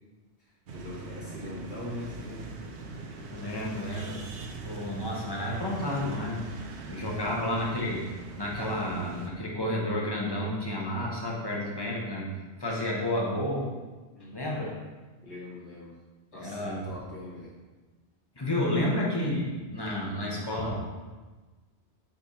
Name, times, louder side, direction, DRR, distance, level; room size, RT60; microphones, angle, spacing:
voice 1, 0.4-2.6 7.2-7.4 14.1-14.6 15.2-15.9 16.3-17.5 18.8-18.9, left 2 dB, 90° left, -9 dB, 2.6 m, -42 dB
sound 1, 0.7-9.3, right 3 dB, 85° right, 1.0 m, -41 dB
voice 2, 3.3-6.5 6.8-12.3 12.6-13.7 14.3-14.7 16.3-16.8 18.4-20.8, left 1 dB, 25° left, -3 dB, 1.2 m, -31 dB
8.0 x 3.5 x 4.2 m, 1.3 s
omnidirectional pair, 1.1 m